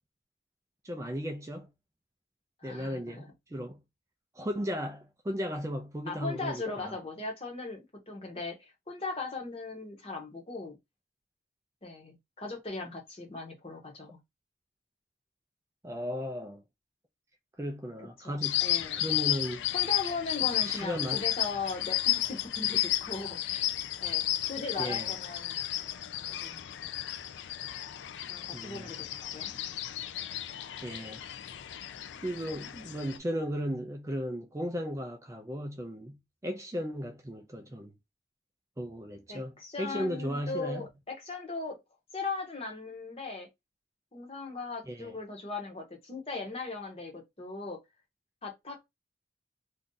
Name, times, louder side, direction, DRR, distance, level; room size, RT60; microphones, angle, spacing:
voice 1, 0.8-1.7 2.6-3.8 4.3-7.0 15.8-16.6 17.6-18.7 19.0-19.6 20.4-21.2 24.8-25.1 28.5-28.9 30.8-31.2 32.2-37.9 38.8-40.9 44.9-45.1, equal, 15° right, 0.3 m, -36 dB
voice 2, 2.6-3.3 6.1-7.8 8.1-10.8 11.8-14.2 18.2-19.0 19.7-23.7 24.0-24.2 24.5-25.6 26.3-27.0 28.3-29.5 39.3-41.8 42.1-43.5 44.1-47.8 48.4-48.9, left 3 dB, 30° left, 0.9 m, -38 dB
sound 1, 18.4-33.2, left 13 dB, 80° left, 0.3 m, -33 dB
2.6 x 2.3 x 3.7 m
head